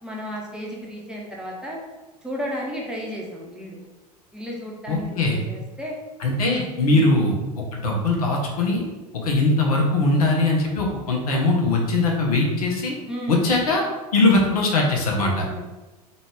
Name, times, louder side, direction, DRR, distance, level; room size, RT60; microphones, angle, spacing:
voice 1, 0.0-1.8 2.2-3.8 4.3-6.0 6.9-7.1 13.1-13.5 15.2-15.6, equal, 5° right, -4 dB, 0.8 m, -33 dB
voice 2, 4.9-5.4 6.2-7.3 7.7-8.8 9.2-12.9 13.3-13.8 14.1-15.5, left 2 dB, 65° left, 0 dB, 0.9 m, -21 dB
3.9 x 2.4 x 3.5 m, 1.1 s
figure-of-eight pair, 80°, 20 cm